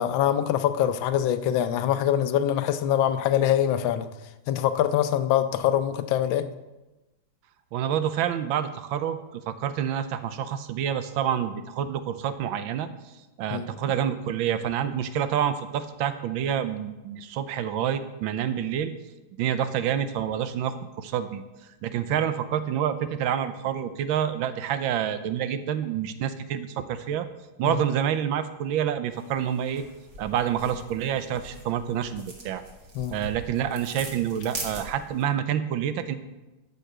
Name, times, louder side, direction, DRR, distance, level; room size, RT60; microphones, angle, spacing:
voice 1, 0.0-4.1 4.5-6.5 13.5-13.7 27.6-27.8 32.9-33.2, left 10 dB, 80° left, 11 dB, 1.4 m, -24 dB
voice 2, 7.7-12.9 13.4-18.9 19.4-21.4 21.8-27.3 27.6-29.8 30.2-32.6 33.1-36.1, right 9 dB, 85° right, 11 dB, 1.5 m, -28 dB
sound 1, 29.1-35.2, right 2 dB, 55° right, 2.5 m, -41 dB
12.5 x 5.4 x 6.6 m, 1.1 s
omnidirectional pair, 2.1 m